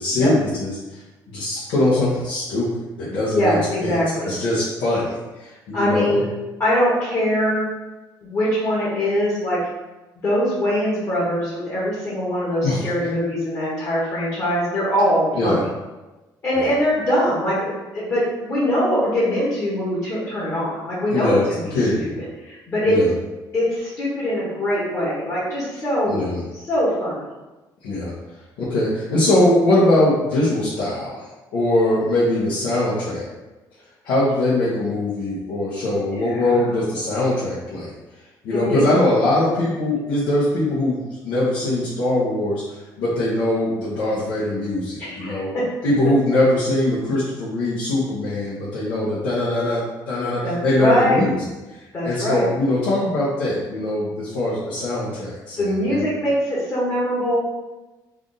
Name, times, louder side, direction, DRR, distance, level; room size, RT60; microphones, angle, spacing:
voice 1, 0.0-3.6 3.8-4.0 4.2-6.2 12.6-12.9 15.4-15.6 16.5-16.7 21.1-22.1 22.8-23.1 26.1-26.4 27.8-28.1 28.6-33.3 34.0-37.9 38.4-45.5 45.8-51.4 51.7-56.0, left 1 dB, 90° left, -9 dB, 1.1 m, -22 dB
voice 2, 3.3-4.3 5.7-6.2 6.6-7.7 8.2-9.6 10.2-15.6 16.4-21.6 22.4-23.0 23.5-26.2 26.6-27.2 36.2-36.5 38.5-38.9 45.0-45.6 50.4-51.2 51.9-52.5 55.6-57.4, equal, 35° left, -8 dB, 1.2 m, -22 dB
3.4 x 2.5 x 3.9 m, 1.1 s
cardioid pair, 155°, 8 cm